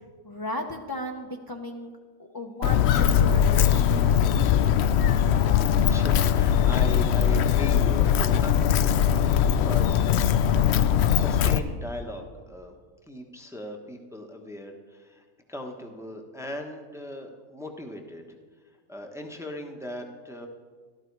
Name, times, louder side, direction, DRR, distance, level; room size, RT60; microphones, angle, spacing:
voice 1, 0.2-1.9 2.2-4.3, left 1 dB, 20° left, 1 dB, 0.7 m, -35 dB
Walk footsteps, 2.6-11.6, left 9 dB, 65° left, 0.6 m, -21 dB
voice 2, 5.8-10.9 11.1-12.8 13.1-18.2 18.9-20.5, left 1 dB, ahead, 3 dB, 1.0 m, -38 dB
15.0 x 12.5 x 4.7 m, 1.5 s
omnidirectional pair, 1.6 m